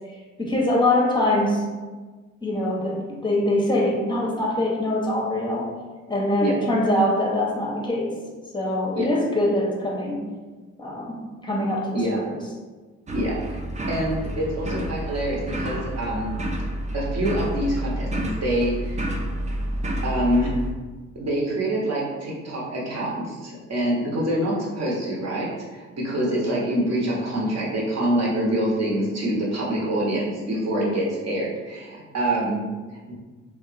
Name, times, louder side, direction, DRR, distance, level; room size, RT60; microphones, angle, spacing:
voice 1, 0.4-1.7 2.4-5.7 6.1-8.2 8.5-10.2 10.8-11.2 11.4-12.4, left 1 dB, 10° left, -1 dB, 0.7 m, -23 dB
sound 1, 13.1-20.7, equal, 20° right, 0.5 m, -29 dB
voice 2, 13.1-13.6 13.9-16.3 16.9-19.1 20.0-20.5 21.1-32.6 33.1-33.2, right 1 dB, 45° right, -5 dB, 1.0 m, -25 dB
2.7 x 2.2 x 2.5 m, 1.3 s
hypercardioid pair, 40°, 37 cm